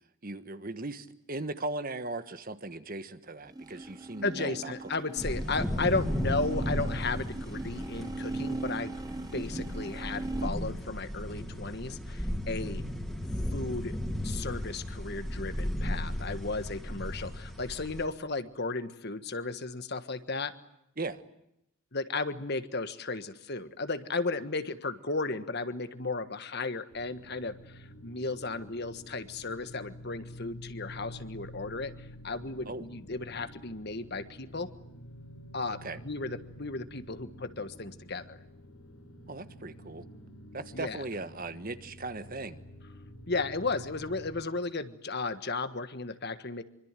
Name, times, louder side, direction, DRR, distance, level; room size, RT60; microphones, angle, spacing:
voice 1, 0.2-4.7 21.0-21.2 32.7-32.8 35.8-36.0 39.3-40.0 40.5-42.6, right 2 dB, 40° right, 11 dB, 1.4 m, -38 dB
sound 1, 3.4-10.5, right 2 dB, 20° right, 1.0 m, -39 dB
voice 2, 4.2-9.0 9.3-12.8 13.5-14.0 14.2-20.5 21.9-34.7 35.5-38.4 40.7-41.0 43.3-46.6, left 3 dB, 50° left, 11 dB, 1.5 m, -34 dB
sound 2, 5.2-18.0, equal, ahead, 3.1 m, -35 dB
sound 3, 26.9-44.4, equal, 80° left, 4.6 m, -49 dB
25.5 x 25.0 x 9.0 m, 0.81 s
head